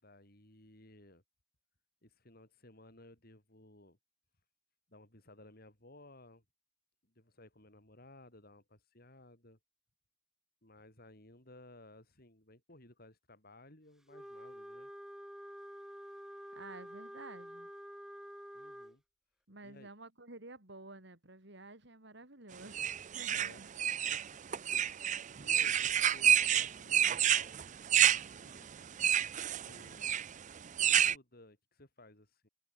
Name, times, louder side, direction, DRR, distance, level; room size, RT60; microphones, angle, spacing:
voice 1, 0.0-1.2 2.0-4.0 4.9-6.4 7.1-9.6 10.6-14.9 18.5-19.0 19.6-19.9 23.3-23.6 24.1-24.2 24.8-27.6 28.3-28.7 29.4-30.2 30.6-32.5, left 1 dB, 55° left, 6.4 m, -58 dB
Wind instrument woodwind instrument, 14.1-19.0, equal, 5° right, 0.9 m, -49 dB
voice 2, 16.5-17.7 19.5-23.7, right 2 dB, 65° right, 4.1 m, -51 dB
sound 1, 22.7-31.1, right 10 dB, 40° right, 0.5 m, -29 dB
head